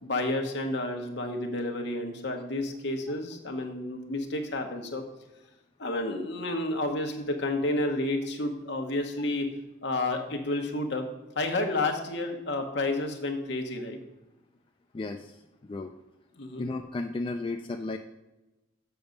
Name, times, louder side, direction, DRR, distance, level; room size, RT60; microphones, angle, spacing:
voice 1, 0.0-5.0 5.8-9.5 9.8-11.0 11.3-14.0 16.4-16.6, left 2 dB, 60° left, 3 dB, 1.1 m, -30 dB
voice 2, 14.9-15.4 15.7-15.9 16.6-18.0, left 2 dB, 25° left, 4 dB, 0.3 m, -33 dB
7.0 x 6.0 x 5.2 m, 1.0 s
head